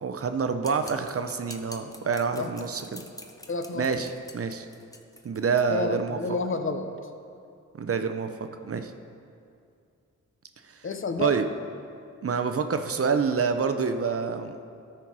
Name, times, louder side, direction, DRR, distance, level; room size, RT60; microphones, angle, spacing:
voice 1, 0.0-3.0 3.7-4.1 4.3-4.7 5.2-6.2 7.8-8.3 8.6-8.9 11.2-11.4 12.2-14.6, right 5 dB, 45° right, 8 dB, 0.7 m, -27 dB
sound 1, 0.6-5.7, left 1 dB, 10° left, 0.8 m, -46 dB
voice 2, 3.5-3.9 5.7-6.9 10.8-11.3, left 4 dB, 40° left, 7 dB, 0.8 m, -30 dB
13.0 x 4.5 x 4.7 m, 2.5 s
cardioid pair, 55°, 31 cm